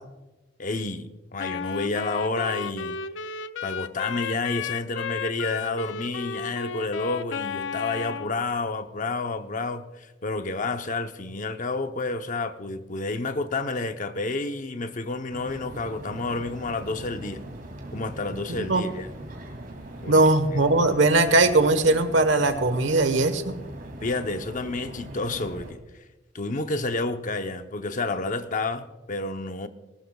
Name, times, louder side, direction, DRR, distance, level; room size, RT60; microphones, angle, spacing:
voice 1, 0.6-3.0 3.6-17.4 17.9-19.1 20.0-20.2 24.0-25.8 26.3-29.7, left 3 dB, 45° left, 0.8 m, -30 dB
Wind instrument woodwind instrument, 1.4-8.4, left 6 dB, 80° left, 0.5 m, -33 dB
sound 1, 15.3-25.7, right 1 dB, 50° right, 2.6 m, -40 dB
voice 2, 20.1-23.6, right 2 dB, 85° right, 1.2 m, -20 dB
19.0 x 19.0 x 2.3 m
head